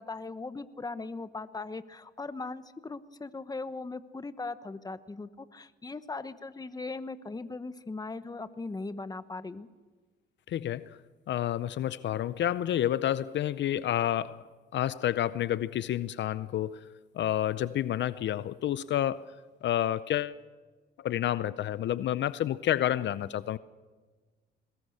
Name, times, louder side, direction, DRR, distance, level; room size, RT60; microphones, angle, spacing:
voice 1, 0.0-9.7, left 3 dB, 20° left, 12 dB, 1.1 m, -39 dB
voice 2, 10.5-11.0 11.3-14.4 14.7-16.9 17.1-19.4 19.6-20.4 21.0-23.6, left 11 dB, 65° left, 15 dB, 0.6 m, -29 dB
22.0 x 20.0 x 6.6 m, 1.4 s
cardioid pair, 90°, 20 cm